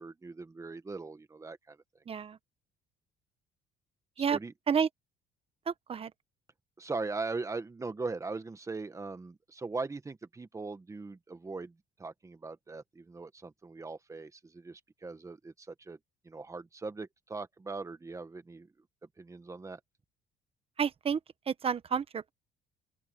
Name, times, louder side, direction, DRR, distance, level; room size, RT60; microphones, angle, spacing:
voice 1, 0.0-1.8 4.3-4.5 6.8-16.0 16.2-18.7 19.2-19.8, right 3 dB, 20° right, 1.5 m, -40 dB
voice 2, 2.1-2.4 4.2-4.4 4.7-4.9 5.7-6.1 20.8-21.2 21.5-22.3, right 7 dB, 35° right, 1.2 m, -30 dB
open air
cardioid pair, 110°, 17 cm